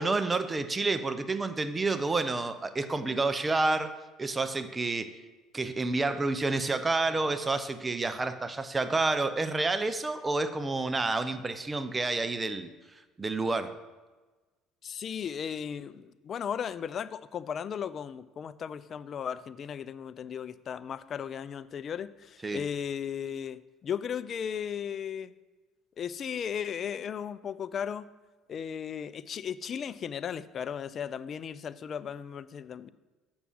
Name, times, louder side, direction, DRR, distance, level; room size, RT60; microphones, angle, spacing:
voice 1, 0.0-3.9 4.2-5.1 5.5-12.7 13.2-13.7 22.4-22.6, right 3 dB, 20° right, 11 dB, 0.6 m, -29 dB
voice 2, 14.8-25.3 26.0-28.1 28.5-32.9, left 8 dB, 45° left, 16 dB, 0.4 m, -36 dB
7.1 x 6.2 x 7.1 m, 1.2 s
supercardioid pair, 90°, 0 cm